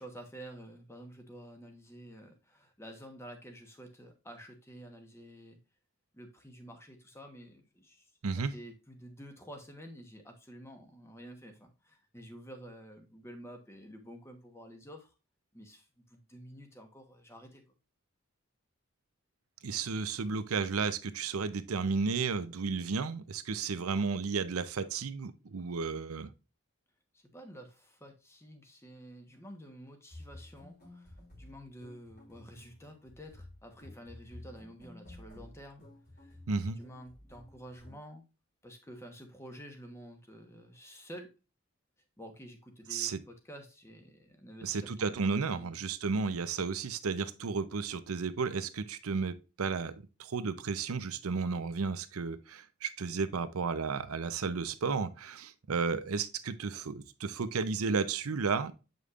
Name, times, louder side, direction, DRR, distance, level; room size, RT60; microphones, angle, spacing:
voice 1, 0.0-5.6 6.1-8.1 8.4-15.2 15.5-17.6 27.1-35.8 36.2-36.4 36.8-38.2 38.6-41.3 42.2-45.9, equal, 10° left, 1.1 m, -50 dB
voice 2, 19.6-26.3 36.5-36.8 42.9-43.2 44.6-58.7, right 4 dB, 85° right, 0.6 m, -33 dB
sound 1, 30.1-38.0, left 1 dB, 45° left, 2.8 m, -52 dB
8.0 x 5.2 x 2.4 m
head